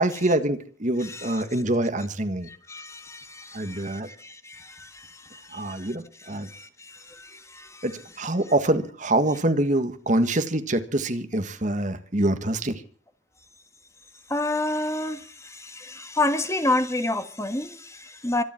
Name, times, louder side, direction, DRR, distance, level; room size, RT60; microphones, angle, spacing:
voice 1, 0.0-2.5 3.5-4.1 5.5-6.5 7.8-12.8, right 1 dB, 40° right, 1.7 m, -25 dB
voice 2, 1.0-1.4 2.5-5.9 6.4-7.8 14.3-18.4, left 2 dB, 15° left, 1.5 m, -30 dB
25.5 x 10.5 x 4.5 m
head